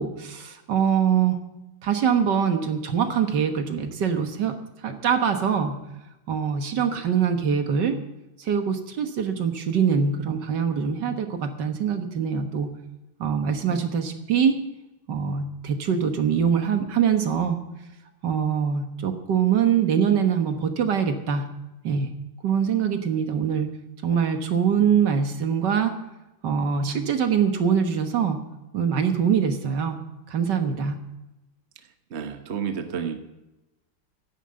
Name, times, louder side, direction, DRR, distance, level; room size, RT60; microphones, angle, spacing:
voice 1, 0.0-1.4 1.8-4.6 4.8-5.8 6.3-8.0 8.4-12.7 13.2-14.6 15.1-17.6 18.2-21.5 21.8-22.1 22.4-23.7 24.0-25.9 26.4-28.4 28.7-30.0 30.3-31.0, right 7 dB, 60° right, 7 dB, 1.8 m, -23 dB
voice 2, 32.1-33.2, right 7 dB, 40° right, 7 dB, 1.0 m, -30 dB
11.0 x 10.0 x 8.8 m, 0.97 s
omnidirectional pair, 2.3 m